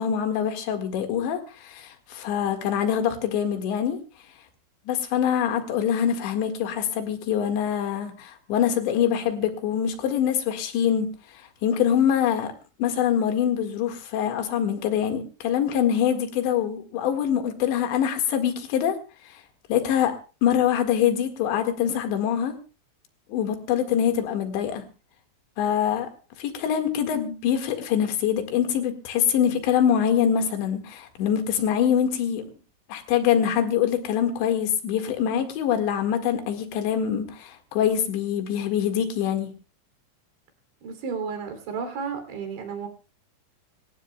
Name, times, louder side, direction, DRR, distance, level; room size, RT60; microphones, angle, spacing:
voice 1, 0.0-4.0 4.9-11.1 11.3-12.5 12.8-19.0 19.3-19.4 19.7-20.2 20.4-22.5 23.3-24.8 25.6-26.1 26.4-32.5 32.9-39.5, left 9 dB, 75° left, 6 dB, 4.0 m, -24 dB
voice 2, 40.8-42.9, right 6 dB, 75° right, 6 dB, 5.3 m, -32 dB
26.0 x 15.5 x 2.3 m, 0.34 s
omnidirectional pair, 5.3 m